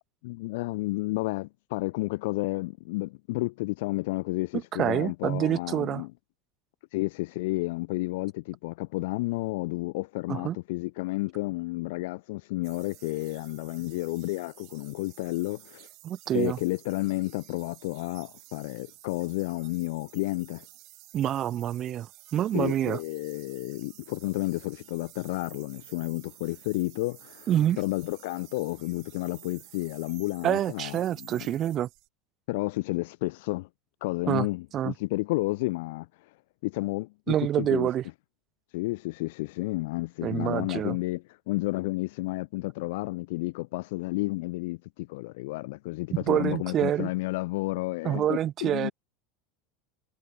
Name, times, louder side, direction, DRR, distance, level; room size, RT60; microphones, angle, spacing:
voice 1, 0.2-6.1 6.9-15.9 16.3-20.7 22.5-27.5 27.8-31.5 32.5-33.7 34.0-36.3 36.6-37.9 38.7-48.9, left 22 dB, 70° left, 1.1 m, -31 dB
voice 2, 4.8-6.0 10.3-10.6 16.0-16.6 21.1-23.0 27.5-27.8 30.4-31.9 34.3-34.5 34.7-34.9 37.3-38.0 40.2-41.0 46.1-47.1 48.0-48.9, right 11 dB, 40° right, 1.4 m, -27 dB
sound 1, 12.6-32.1, right 23 dB, 60° right, 4.8 m, -52 dB
hypercardioid pair, 95°, 0 cm